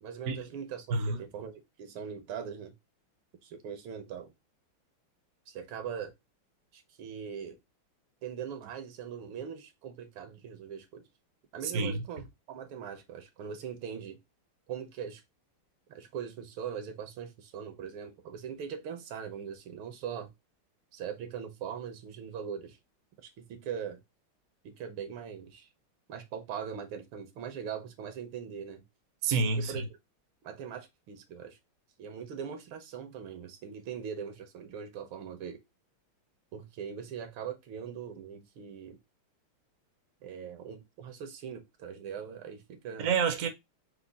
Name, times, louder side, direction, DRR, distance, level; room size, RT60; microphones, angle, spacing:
voice 1, 0.0-2.7 3.4-4.3 5.5-6.1 6.7-7.6 8.2-11.1 11.5-14.2 14.7-15.2 15.9-20.3 20.9-22.8 23.2-24.0 24.6-25.7 26.1-28.8 29.6-30.0 30.4-31.6 32.0-35.6 36.5-39.0 40.2-43.1, right 7 dB, 75° right, 1.6 m, -41 dB
voice 2, 29.2-29.9 43.0-43.5, right 4 dB, 60° right, 0.8 m, -28 dB
4.8 x 2.2 x 3.9 m
omnidirectional pair, 2.3 m